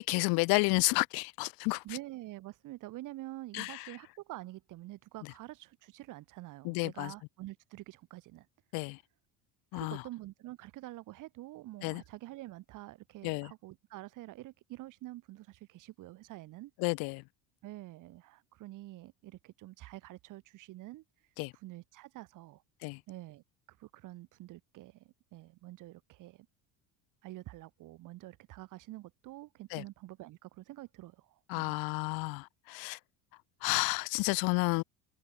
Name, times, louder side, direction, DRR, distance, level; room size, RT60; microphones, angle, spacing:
voice 1, 0.0-1.8 3.5-3.8 6.6-7.1 8.7-9.0 9.7-10.0 11.8-12.0 13.2-13.5 16.8-17.2 21.4-21.5 22.8-23.0 29.7-29.8 31.5-33.0 33.6-34.8, left 30 dB, 60° left, 0.5 m, -31 dB
voice 2, 1.8-8.5 9.7-16.7 17.6-22.6 23.1-26.5 27.2-31.8, right 17 dB, 45° right, 1.5 m, -47 dB
cardioid pair, 160°, 41 cm